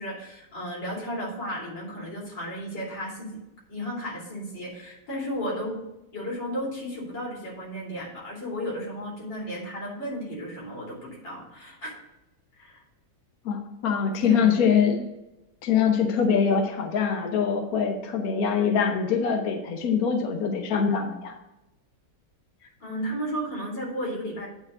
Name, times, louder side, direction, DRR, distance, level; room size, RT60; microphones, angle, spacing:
voice 1, 0.0-3.4 3.7-5.8 6.1-11.9 12.5-12.8 14.2-14.8 22.6-24.5, equal, 80° left, -4 dB, 3.6 m, -34 dB
voice 2, 13.4-15.0 15.6-21.3, left 6 dB, 60° left, 4 dB, 1.2 m, -24 dB
8.9 x 3.7 x 6.5 m, 0.95 s
omnidirectional pair, 2.0 m